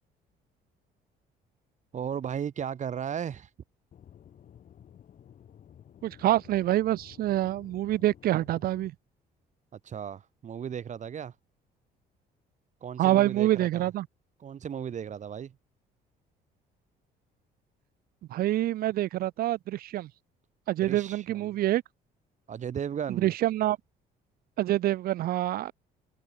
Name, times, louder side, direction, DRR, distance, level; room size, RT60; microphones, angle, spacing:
voice 1, 1.9-3.5 9.8-11.3 12.8-13.9 14.4-15.6 20.8-21.6 22.5-23.3, right 8 dB, 45° right, 4.7 m, -35 dB
Aircraft / Engine, 3.9-8.9, left 9 dB, 50° left, 3.4 m, -53 dB
voice 2, 6.0-8.9 13.0-14.1 18.3-20.1 20.7-21.8 23.1-23.8 24.6-25.7, right 14 dB, 60° right, 0.6 m, -26 dB
cardioid pair, 110°, 17 cm